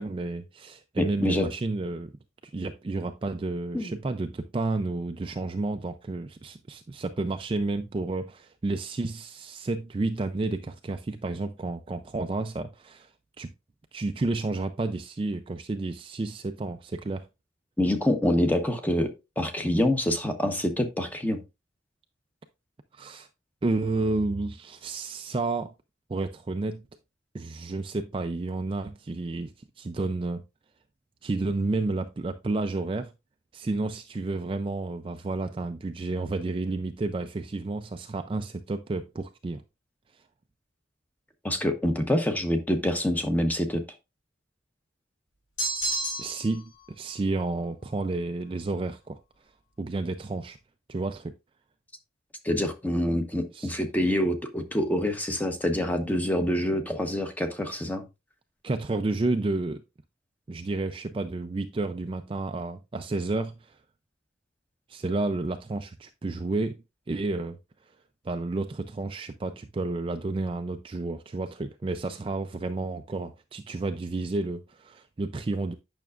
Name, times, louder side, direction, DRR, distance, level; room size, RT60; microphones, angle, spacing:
voice 1, 0.0-2.1 2.4-13.1 13.4-13.5 13.9-17.3 22.9-23.3 23.6-25.7 26.1-26.8 27.3-30.4 31.2-33.1 33.5-39.6 46.2-49.2 49.8-50.6 50.9-51.3 53.5-53.7 58.6-59.8 60.5-63.8 64.9-66.8 67.1-67.6 68.2-75.7, right 2 dB, 25° right, 0.3 m, -31 dB
voice 2, 1.0-1.5 3.7-3.9 17.8-19.1 19.4-21.4 41.4-43.8 52.4-58.0, left 1 dB, 10° left, 0.9 m, -26 dB
sound 1, 45.6-46.6, right 1 dB, 85° left, 3.2 m, -30 dB
9.1 x 5.9 x 2.4 m
head